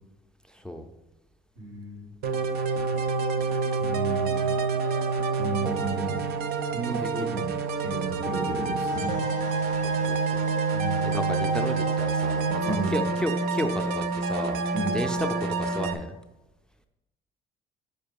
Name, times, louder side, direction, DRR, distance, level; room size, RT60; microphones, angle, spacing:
voice 1, 0.5-0.9 7.0-7.1 9.7-10.5 11.0-14.6 14.9-16.1, equal, 5° left, 6 dB, 0.5 m, -33 dB
voice 2, 1.6-2.1 3.8-4.5 5.1-6.3 6.7-9.1 10.7-11.2 12.6-13.0 14.7-15.0, right 3 dB, 85° right, -3 dB, 2.5 m, -33 dB
sound 1, 2.2-15.9, right 4 dB, 70° right, 0.6 m, -27 dB
sound 2, 8.8-12.9, left 4 dB, 45° right, 1.4 m, -40 dB
5.4 x 5.1 x 5.2 m, 1.0 s
cardioid pair, 110°, 17 cm